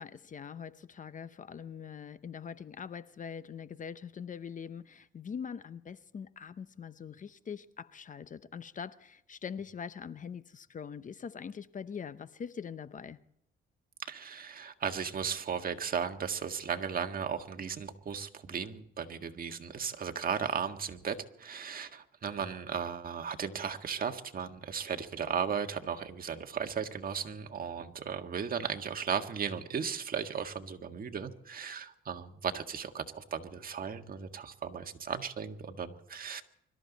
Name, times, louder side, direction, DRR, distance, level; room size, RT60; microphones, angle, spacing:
voice 1, 0.0-13.2, left 7 dB, 40° left, 0.8 m, -43 dB
voice 2, 14.1-36.4, right 7 dB, 45° right, 1.7 m, -36 dB
24.5 x 13.5 x 4.1 m
cardioid pair, 90°, 20 cm